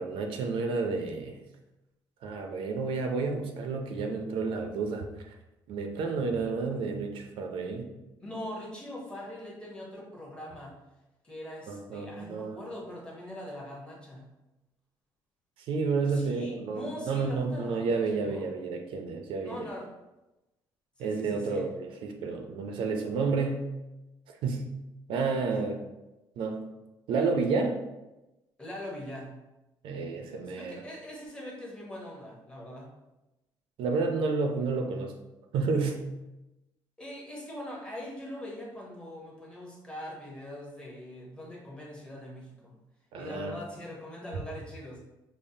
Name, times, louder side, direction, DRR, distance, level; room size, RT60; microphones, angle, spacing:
voice 1, 0.0-1.4 2.2-5.0 5.7-7.9 11.7-12.5 15.7-19.6 21.0-23.7 24.4-24.7 25.1-25.8 26.4-26.6 27.1-27.8 29.8-30.8 33.8-35.1 35.5-36.0 43.1-43.5, right 4 dB, 80° right, 4 dB, 0.5 m, -30 dB
voice 2, 8.2-10.8 11.2-14.3 16.0-18.5 19.4-19.9 21.0-21.7 28.6-29.4 30.3-32.9 37.0-42.8 43.2-45.0, left 1 dB, 10° left, -3 dB, 0.8 m, -42 dB
5.2 x 2.0 x 2.7 m, 1.0 s
cardioid pair, 160°, 9 cm